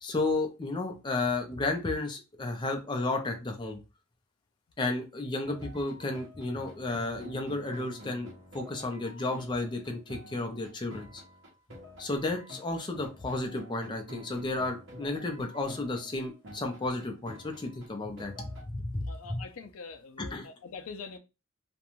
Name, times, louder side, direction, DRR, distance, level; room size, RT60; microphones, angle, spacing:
voice 1, 0.0-3.8 4.8-11.2 12.0-19.4 20.3-20.5, left 2 dB, 20° left, 0.5 m, -33 dB
sound 1, 5.4-18.7, equal, 60° right, 1.0 m, -49 dB
voice 2, 19.1-21.2, left 4 dB, 75° left, 0.4 m, -44 dB
2.5 x 2.2 x 2.9 m
head